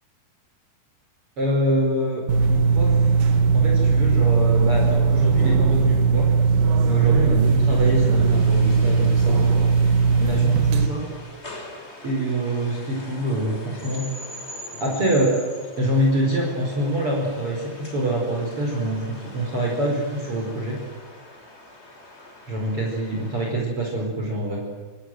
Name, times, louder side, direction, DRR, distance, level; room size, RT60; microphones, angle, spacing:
voice 1, 1.4-3.1 3.5-6.3 6.9-9.4 10.1-11.1 12.0-14.1 14.8-15.4 15.8-20.8 22.5-24.6, right 1 dB, 35° right, -1 dB, 5.6 m, -25 dB
sound 1, 2.3-10.9, right 5 dB, 70° right, 3.2 m, -18 dB
sound 2, 7.4-23.5, left 1 dB, 15° left, 3.5 m, -43 dB
28.0 x 27.0 x 7.9 m, 1.4 s
omnidirectional pair, 4.4 m